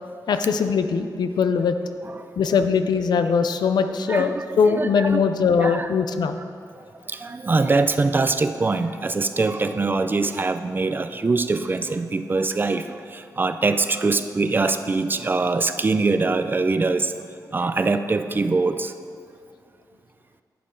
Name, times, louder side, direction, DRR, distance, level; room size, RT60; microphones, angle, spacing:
voice 1, 0.3-1.8 2.4-6.4, left 6 dB, 90° left, 8 dB, 0.5 m, -21 dB
voice 2, 4.1-5.2 5.6-5.9 6.8-17.1 17.5-18.9, right 3 dB, 30° right, 9 dB, 0.4 m, -23 dB
11.0 x 8.7 x 3.9 m, 2.3 s
wide cardioid pair, 125°, 7 cm